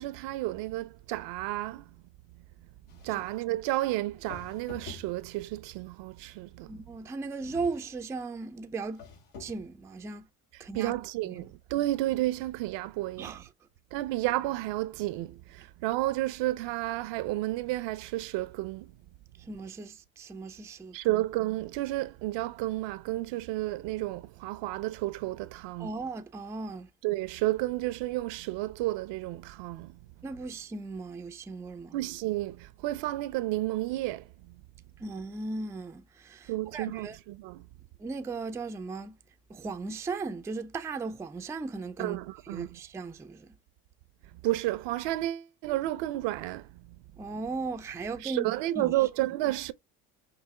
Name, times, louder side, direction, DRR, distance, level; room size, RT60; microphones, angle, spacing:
voice 1, 0.0-1.8 3.0-6.7 10.7-13.4 13.9-18.9 20.9-25.9 27.0-30.0 31.9-34.3 36.5-37.6 42.0-42.8 44.4-46.7 48.2-49.7, right 16 dB, 70° right, 0.6 m, -31 dB
sound 1, 2.9-3.5 4.2-5.5 7.4-8.1 8.9-9.7, left 4 dB, 85° left, 2.1 m, -48 dB
voice 2, 6.7-9.0 9.4-10.3 10.6-11.0 11.2-11.5 13.2-13.5 19.4-21.2 25.8-26.9 30.2-32.0 35.0-37.2 38.0-39.2 39.5-42.2 42.5-43.5 47.2-48.9, right 3 dB, 5° right, 0.3 m, -37 dB
5.7 x 2.0 x 3.1 m
supercardioid pair, 85°, 45 cm